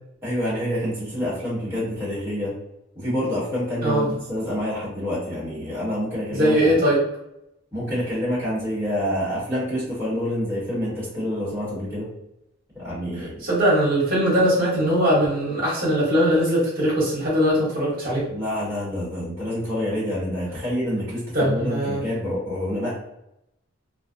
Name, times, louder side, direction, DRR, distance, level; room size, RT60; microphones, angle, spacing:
voice 1, 0.2-2.5 2.9-6.7 7.7-12.1 12.7-13.4 18.3-23.0, equal, 10° right, -10 dB, 0.9 m, -27 dB
voice 2, 6.3-7.0 13.2-18.3 21.3-22.0, equal, 45° right, -6 dB, 1.0 m, -21 dB
2.4 x 2.0 x 2.5 m, 0.83 s
head